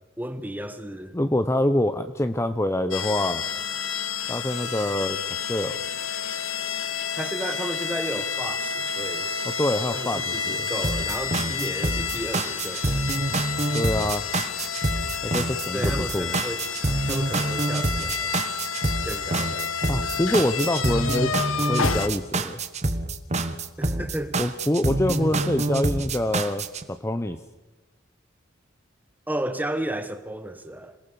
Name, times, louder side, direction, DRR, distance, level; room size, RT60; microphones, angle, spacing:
voice 1, 0.2-1.2 7.2-9.3 9.9-13.1 15.7-16.7 17.0-18.3 19.0-20.0 23.8-24.4 29.3-31.0, right 1 dB, 10° right, 1.4 m, -33 dB
voice 2, 1.1-3.4 4.3-5.2 5.5-5.8 9.4-10.7 13.7-14.2 15.2-16.3 19.9-22.6 24.4-27.4, left 1 dB, 15° left, 0.7 m, -25 dB
sound 1, 2.9-22.1, left 6 dB, 85° left, 1.6 m, -30 dB
sound 2, 10.8-26.8, right 2 dB, 35° right, 1.4 m, -27 dB
27.5 x 18.5 x 7.0 m
head